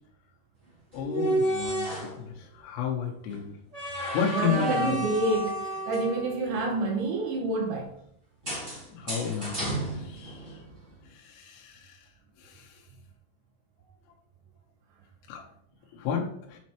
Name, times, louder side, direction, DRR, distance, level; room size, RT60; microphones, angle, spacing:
voice 1, 0.9-1.9 2.6-3.5 4.1-5.1 8.9-9.9 10.2-10.3 11.5-11.6 15.3-15.4 16.0-16.3, left 7 dB, 85° left, 3.6 m, -30 dB
sound 1, 0.9-2.2 3.7-6.6 8.4-10.7, right 1 dB, 50° right, 0.8 m, -31 dB
voice 2, 4.3-7.9, right 2 dB, 75° right, 3.0 m, -28 dB
9.7 x 4.2 x 3.0 m
omnidirectional pair, 5.9 m